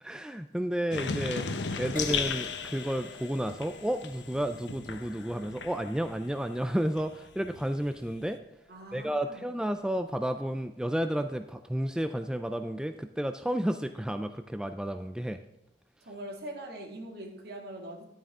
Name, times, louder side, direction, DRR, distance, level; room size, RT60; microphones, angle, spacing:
voice 1, 0.0-1.5 1.8-8.4 8.9-15.4, equal, 5° right, 8 dB, 0.3 m, -32 dB
sound 1, 0.9-6.3 6.6-8.3, left 5 dB, 70° left, 0.8 m, -36 dB
Crash cymbal, 2.0-9.6 10.3-10.6, left 4 dB, 45° left, 1.7 m, -50 dB
voice 2, 8.7-9.5 16.0-18.1, right 1 dB, 60° right, 1 dB, 2.2 m, -42 dB
11.5 x 8.9 x 3.6 m, 0.91 s
head